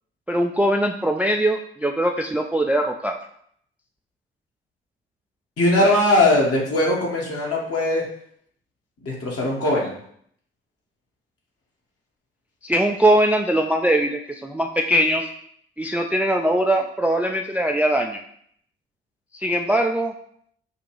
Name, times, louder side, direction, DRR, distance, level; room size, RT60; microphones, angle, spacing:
voice 1, 0.3-3.1 12.6-15.3 15.8-18.2 19.4-20.1, right 1 dB, 5° right, 4 dB, 0.3 m, -21 dB
voice 2, 5.6-8.0 9.0-9.9, left 1 dB, 50° left, -2 dB, 1.4 m, -20 dB
5.4 x 2.4 x 3.1 m, 0.66 s
figure-of-eight pair, 40°, 30 cm